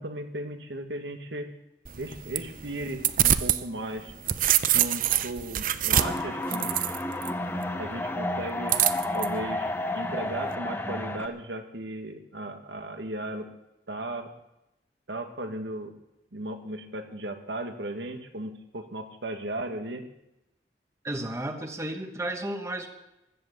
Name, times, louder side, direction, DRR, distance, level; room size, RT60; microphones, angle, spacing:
voice 1, 0.0-1.5 2.0-4.1 4.7-6.9 7.8-8.8 9.1-13.5 13.9-14.3 15.1-15.9 16.3-20.0, right 1 dB, 85° right, 6 dB, 1.7 m, -36 dB
sound 1, 1.9-3.6 4.0-7.3 8.7-9.3, right 11 dB, 50° right, 0.6 m, -25 dB
sound 2, 5.9-11.3, left 1 dB, 15° left, 1.0 m, -31 dB
voice 2, 21.0-22.9, right 1 dB, 15° right, 6 dB, 1.1 m, -33 dB
15.5 x 11.0 x 6.8 m, 0.91 s
head